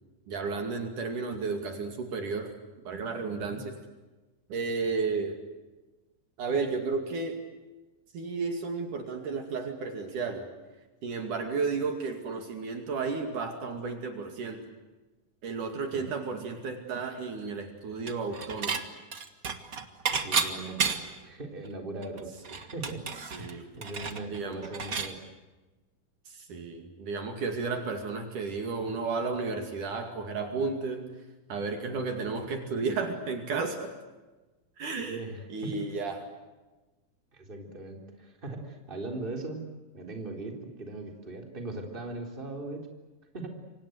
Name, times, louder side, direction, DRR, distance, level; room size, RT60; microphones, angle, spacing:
voice 1, 0.3-2.5 2.9-3.7 4.5-5.4 6.4-7.4 8.1-10.5 11.0-14.6 15.4-18.8 23.3-23.7 24.3-24.7 26.3-31.1 31.5-33.9 34.8-36.3, right 4 dB, 60° right, 5 dB, 3.8 m, -33 dB
Dishes pots and pans / Chink clink, 18.1-18.8 19.1-21.2 21.7-21.8 22.0-25.1, right 5 dB, 45° right, 1.1 m, -32 dB
voice 2, 20.2-23.0 23.4-25.2 35.0-35.8 37.3-42.9 43.3-43.5, right 2 dB, 15° right, 3 dB, 3.7 m, -39 dB
29.0 x 25.0 x 8.1 m, 1.2 s
omnidirectional pair, 4.1 m